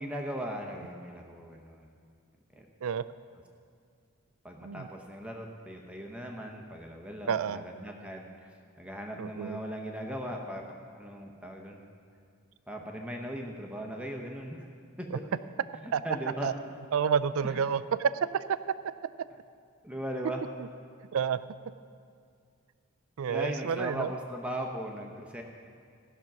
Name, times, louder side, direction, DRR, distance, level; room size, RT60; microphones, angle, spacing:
voice 1, 0.0-2.0 2.5-2.7 4.4-8.5 8.8-10.6 10.9-11.8 12.7-14.7 15.0-15.2 15.7-16.5 17.4-17.6 19.8-20.4 23.3-25.4, equal, 5° right, 1 dB, 0.7 m, -38 dB
voice 2, 7.3-7.6 9.2-9.6 15.9-16.0 16.4-16.5 16.9-18.6 20.6-20.7 21.1-21.4 23.2-24.1, right 7 dB, 70° right, 15 dB, 0.3 m, -29 dB
15.5 x 6.0 x 5.9 m, 2.2 s
head